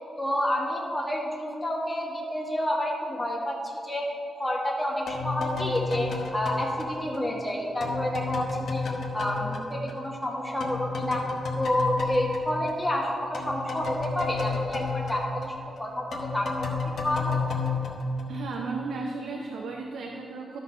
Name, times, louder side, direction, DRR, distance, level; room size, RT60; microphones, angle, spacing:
voice 1, 0.2-4.0 4.4-8.9 9.1-11.2 11.6-15.5 15.8-16.8 17.0-17.4, left 1 dB, 10° left, -3 dB, 1.5 m, -29 dB
sound 1, 5.1-10.3 10.6-18.8, left 3 dB, 70° left, 1.1 m, -32 dB
voice 2, 18.3-20.6, right 4 dB, 85° right, 0 dB, 0.7 m, -34 dB
12.0 x 4.1 x 5.7 m, 2.5 s
cardioid pair, 75°, 0 cm